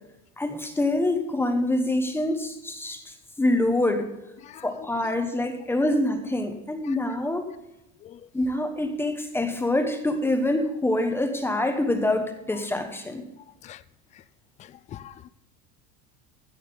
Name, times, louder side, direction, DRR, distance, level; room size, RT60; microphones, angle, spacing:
voice 1, 0.4-4.1 4.6-7.5 8.3-13.2, left 1 dB, 5° left, 6 dB, 1.1 m, -25 dB
voice 2, 4.4-5.1 6.8-7.0 8.0-8.3 12.5-12.6 13.6-13.8 14.1-14.2 14.6-15.3, left 11 dB, 20° left, 17 dB, 0.4 m, -45 dB
16.5 x 6.5 x 5.3 m, 0.90 s
cardioid pair, 160°, 33 cm